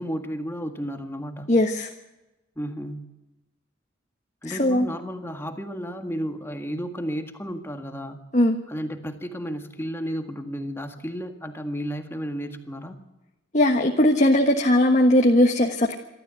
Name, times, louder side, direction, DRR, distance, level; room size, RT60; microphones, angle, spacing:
voice 1, 0.0-1.5 2.6-3.1 4.4-8.2 8.7-13.0, equal, 10° left, 6 dB, 1.8 m, -33 dB
voice 2, 1.5-1.9 4.5-4.9 8.3-8.6 13.5-15.9, left 1 dB, 40° left, 3 dB, 1.4 m, -19 dB
26.5 x 13.0 x 8.3 m, 1.0 s
head